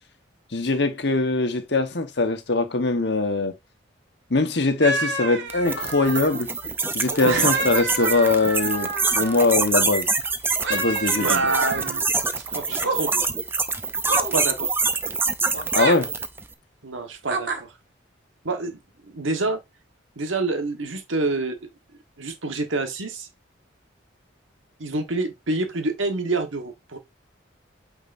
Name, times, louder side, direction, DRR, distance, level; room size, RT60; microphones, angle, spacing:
voice 1, 0.5-3.5 4.3-6.5 6.9-10.1 10.7-11.4 15.7-16.1, left 3 dB, 60° left, 1.2 m, -22 dB
sound 1, 4.8-6.4 7.1-9.5 10.6-12.0 12.7-13.0 14.1-14.4 15.5-16.0 17.2-17.6, right 3 dB, 65° right, 1.8 m, -28 dB
sound 2, 5.5-16.4, right 4 dB, 10° right, 0.5 m, -25 dB
voice 2, 11.1-12.0 12.3-13.3 14.3-14.7 16.8-17.7 18.4-19.6 20.2-21.7 22.2-23.3 24.8-27.0, right 3 dB, 85° right, 1.4 m, -27 dB
8.7 x 4.8 x 2.6 m
head